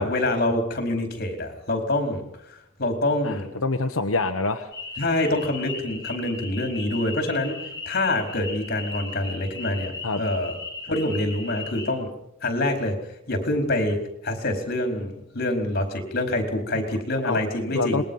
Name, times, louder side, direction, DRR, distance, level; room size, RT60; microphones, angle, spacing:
voice 1, 0.0-2.2 2.8-3.5 5.0-7.6 7.9-10.6 10.9-12.1 12.4-13.0 13.3-18.0, left 1 dB, 50° left, 4 dB, 4.7 m, -26 dB
voice 2, 3.2-4.7 10.0-10.2 17.2-17.4 17.7-18.0, left 3 dB, 75° left, 5 dB, 1.2 m, -26 dB
sound 1, 4.7-11.9, left 3 dB, 20° left, 4.2 m, -37 dB
27.5 x 21.5 x 5.6 m, 0.76 s
head